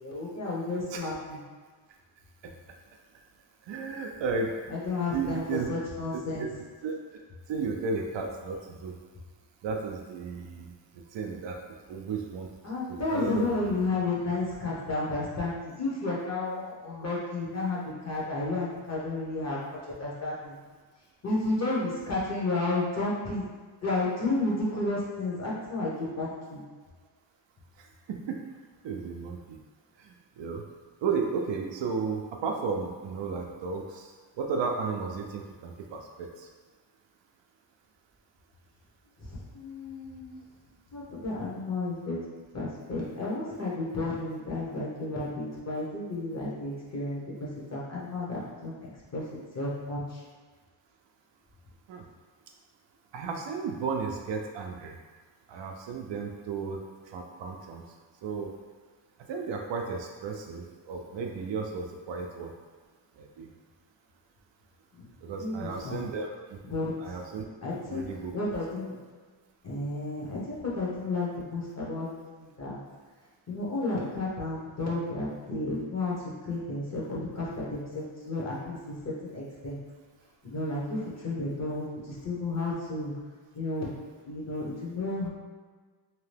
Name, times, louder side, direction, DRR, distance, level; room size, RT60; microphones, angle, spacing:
voice 1, 0.0-1.4 4.7-6.5 12.6-19.6 20.0-20.6 21.2-23.5 23.8-26.6 39.2-40.4 40.9-42.2 42.5-47.2 47.7-49.2 49.5-50.2 65.0-65.1 65.4-66.0 66.6-66.9 67.6-68.0 68.3-68.9 69.6-72.8 73.5-76.1 76.4-78.9 79.3-79.8 80.4-83.1 83.5-83.9 84.2-85.3, left 2 dB, 35° left, -6 dB, 0.9 m, -32 dB
voice 2, 3.7-4.6 5.1-5.7 6.1-6.5 6.8-6.9 7.5-8.9 9.6-10.7 11.1-11.6 11.9-12.5 12.9-13.5 28.1-28.4 28.8-29.6 30.1-30.6 31.0-34.1 34.4-36.5 51.9-52.1 53.1-55.0 55.5-56.8 57.1-57.8 58.2-58.5 59.3-62.5 63.2-63.5 65.2-66.6 67.0-67.4 67.9-68.3, right 5 dB, 65° right, 2 dB, 0.5 m, -33 dB
2.8 x 2.2 x 3.3 m, 1.4 s
cardioid pair, 115°, 47 cm